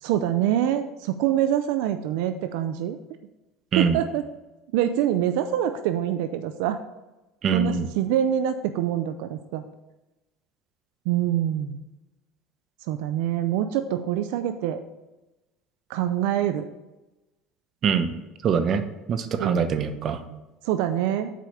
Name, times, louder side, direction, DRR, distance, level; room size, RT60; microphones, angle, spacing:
voice 1, 0.0-3.0 3.8-4.3 4.7-6.8 7.5-9.6 11.1-11.8 12.9-14.8 15.9-16.7 19.4-19.7 20.6-21.3, right 11 dB, 80° right, 9 dB, 0.5 m, -25 dB
voice 2, 7.4-7.9 17.8-18.1 18.4-18.8 19.1-20.2, right 6 dB, 45° right, 10 dB, 0.9 m, -23 dB
7.6 x 4.9 x 6.9 m, 1.0 s
supercardioid pair, 110°, 0 cm